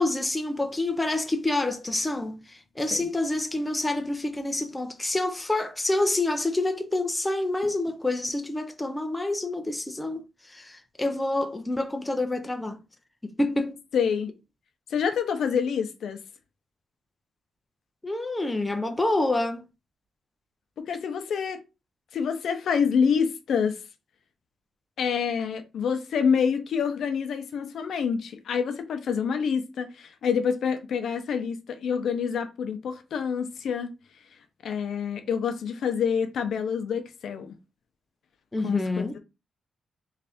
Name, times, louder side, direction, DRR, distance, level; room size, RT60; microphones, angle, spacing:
voice 1, 0.0-12.8 13.2-13.8 18.0-19.6 38.5-39.2, left 2 dB, 10° left, 0.4 m, -27 dB
voice 2, 13.9-14.3 14.9-16.2 20.8-21.6 22.1-23.8 25.0-33.9 34.6-37.6 38.6-38.8, left 6 dB, 70° left, 0.6 m, -27 dB
3.2 x 2.6 x 3.4 m
wide cardioid pair, 145°, 0 cm